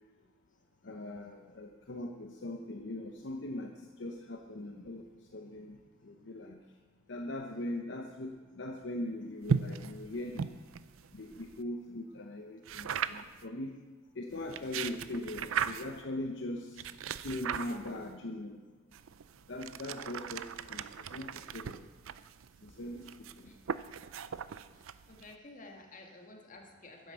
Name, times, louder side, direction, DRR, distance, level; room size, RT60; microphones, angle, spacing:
voice 1, 0.8-5.1 5.3-6.6 7.1-10.5 11.1-13.8 14.1-18.6 19.5-21.8 22.6-23.5, left 1 dB, 60° left, 3 dB, 0.8 m, -41 dB
sound 1, 9.4-11.6 12.7-13.4 14.3-16.0 16.8-18.1 18.9-25.3, right 6 dB, 85° right, 0.5 m, -38 dB
voice 2, 25.1-27.1, left 2 dB, 40° left, 1 dB, 1.8 m, -51 dB
10.5 x 9.7 x 6.9 m, 1.3 s
head